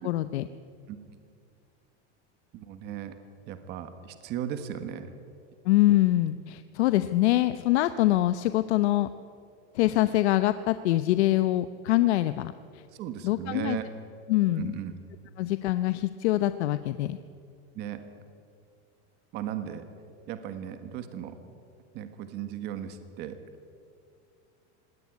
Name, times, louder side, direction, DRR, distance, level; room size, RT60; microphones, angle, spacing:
voice 1, 0.0-0.5 5.7-9.1 9.7-12.8 13.2-13.8 14.3-14.7 15.4-17.2, left 15 dB, 75° left, 12 dB, 0.8 m, -24 dB
voice 2, 2.5-3.1 3.5-5.1 12.9-13.9 14.5-14.9 17.7-18.0 19.3-19.8 20.3-21.4 21.9-23.4, right 10 dB, 30° right, 9 dB, 1.4 m, -36 dB
19.0 x 18.0 x 9.6 m, 2.4 s
supercardioid pair, 180°, 34 cm